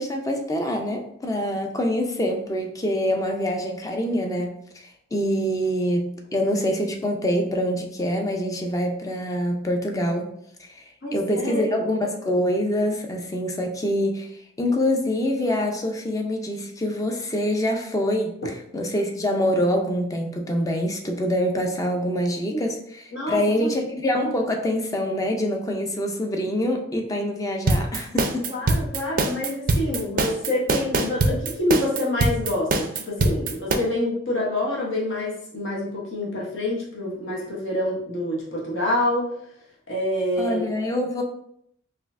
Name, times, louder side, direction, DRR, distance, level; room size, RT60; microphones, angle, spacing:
voice 1, 0.0-10.3 10.6-14.3 14.6-18.4 18.7-28.5 40.4-41.2, equal, 15° left, 3 dB, 0.4 m, -25 dB
voice 2, 11.0-11.8 22.5-22.6 23.1-23.7 28.5-39.3 39.9-40.7, left 1 dB, 65° left, -4 dB, 0.9 m, -27 dB
sound 1, 27.7-33.8, right 2 dB, 45° right, 0.4 m, -22 dB
4.2 x 2.6 x 2.5 m, 0.71 s
head